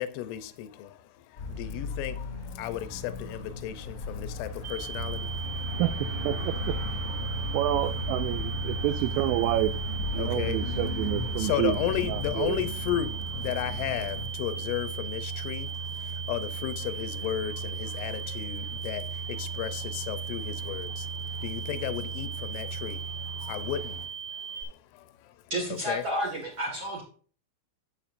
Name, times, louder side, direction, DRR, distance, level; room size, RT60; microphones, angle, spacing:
voice 1, 0.0-5.8 7.2-7.6 9.2-9.3 10.2-10.8 11.2-25.4 25.7-26.0, left 12 dB, 80° left, 3.2 m, -35 dB
sound 1, 1.4-14.2, left 3 dB, 20° left, 1.6 m, -37 dB
sound 2, 4.6-24.6, right 7 dB, 40° right, 3.3 m, -39 dB
sound 3, 4.9-24.1, right 4 dB, 55° left, 1.8 m, -37 dB
voice 2, 5.7-6.8 7.5-11.8 12.1-12.6, right 15 dB, 85° right, 2.8 m, -29 dB
voice 3, 25.5-27.0, equal, 55° right, 1.3 m, -31 dB
11.5 x 8.1 x 2.6 m
omnidirectional pair, 5.7 m